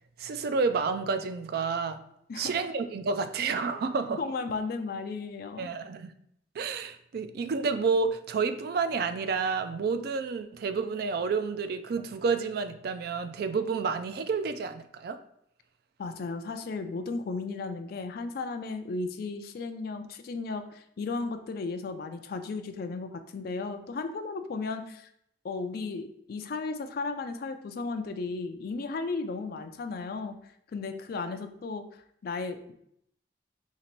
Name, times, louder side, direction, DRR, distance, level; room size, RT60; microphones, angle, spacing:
voice 1, 0.2-2.0 2.4-4.2 5.6-6.1 6.6-15.2, right 4 dB, 60° right, 10 dB, 0.3 m, -30 dB
voice 2, 4.2-5.7 16.0-25.1 25.4-30.3 30.7-31.8 32.2-32.7, left 3 dB, 55° left, 8 dB, 0.4 m, -35 dB
2.9 x 2.8 x 4.4 m, 0.72 s
head